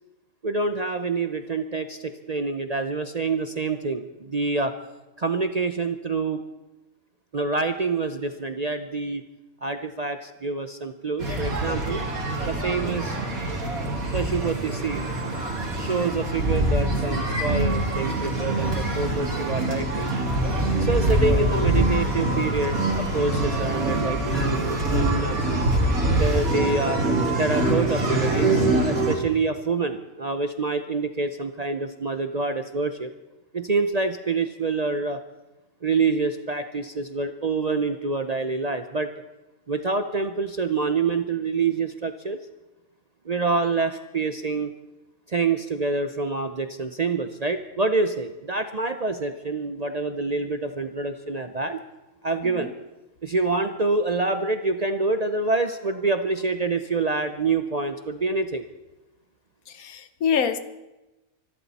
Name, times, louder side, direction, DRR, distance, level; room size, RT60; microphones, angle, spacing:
voice 1, 0.4-4.7 5.2-6.4 7.3-9.2 9.6-12.0 12.4-13.2 14.1-15.1 15.8-20.1 20.8-25.4 26.1-27.0 27.4-33.1 33.5-35.2 35.8-39.1 39.7-42.4 43.2-44.7 45.3-51.8 52.2-52.7 53.2-58.6, right 3 dB, 40° right, 0.6 m, -26 dB
sound 1, 11.2-29.2, right 1 dB, 85° right, 2.9 m, -24 dB
voice 2, 59.7-60.6, left 7 dB, 85° left, 1.4 m, -26 dB
25.0 x 12.5 x 4.2 m
omnidirectional pair, 1.5 m